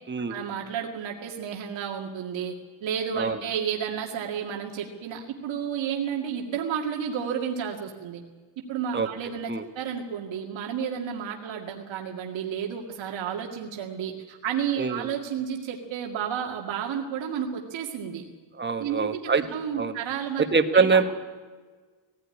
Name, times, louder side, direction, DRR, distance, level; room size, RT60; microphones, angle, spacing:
voice 1, 0.3-2.5 2.8-8.2 8.7-18.2 18.8-20.4 20.7-21.0, right 8 dB, 85° right, 1 dB, 2.2 m, -31 dB
voice 2, 18.6-19.4 19.8-19.9 20.5-21.0, right 5 dB, 25° right, 8 dB, 1.4 m, -23 dB
19.0 x 16.5 x 9.8 m, 1.4 s
cardioid pair, 120°, 45 cm